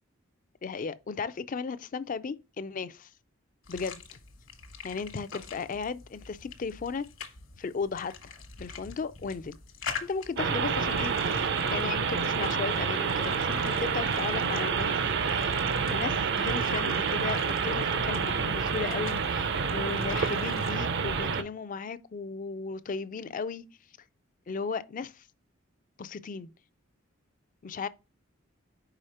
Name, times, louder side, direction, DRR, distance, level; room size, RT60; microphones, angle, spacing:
voice 1, 0.6-3.1 3.7-4.2 4.8-7.1 7.6-9.6 10.0-15.6 15.9-23.7 24.5-25.2 26.0-26.5 27.6-27.9, left 5 dB, 40° left, 0.4 m, -36 dB
sound 1, 3.6-20.7, left 5 dB, 65° left, 1.3 m, -45 dB
sound 2, 10.4-21.4, right 5 dB, 55° right, 0.5 m, -28 dB
4.9 x 4.9 x 4.2 m
head